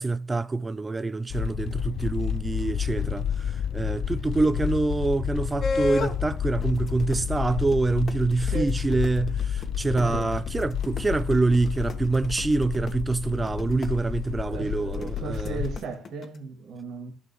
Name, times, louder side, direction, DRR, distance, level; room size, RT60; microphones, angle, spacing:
voice 1, 0.0-15.6, right 3 dB, 20° right, 0.4 m, -26 dB
sound 1, 1.3-15.8, left 9 dB, 70° left, 0.4 m, -30 dB
sound 2, 5.6-6.2 6.6-13.9 14.9-16.4, left 3 dB, 55° left, 1.3 m, -32 dB
voice 2, 10.0-10.3 14.5-17.1, right 4 dB, 80° right, 2.5 m, -35 dB
12.0 x 6.2 x 3.1 m
cardioid pair, 90°, 0 cm